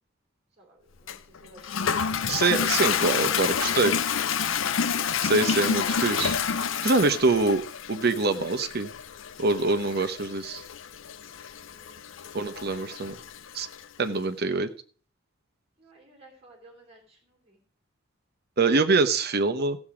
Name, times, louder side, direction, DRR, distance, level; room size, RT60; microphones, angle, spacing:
voice 1, 0.6-2.4 7.2-7.5 11.5-12.1 15.8-17.6, left 1 dB, 30° right, 1 dB, 3.2 m, -51 dB
Toilet flush, 1.1-13.9, left 7 dB, 70° left, 0.6 m, -29 dB
voice 2, 2.3-3.9 5.3-6.4 6.8-7.6 7.9-8.9 9.4-10.6 12.3-13.1 13.5-13.7 14.0-14.7 18.6-19.8, right 3 dB, 55° right, 10 dB, 1.0 m, -24 dB
15.0 x 7.2 x 5.0 m, 0.43 s
head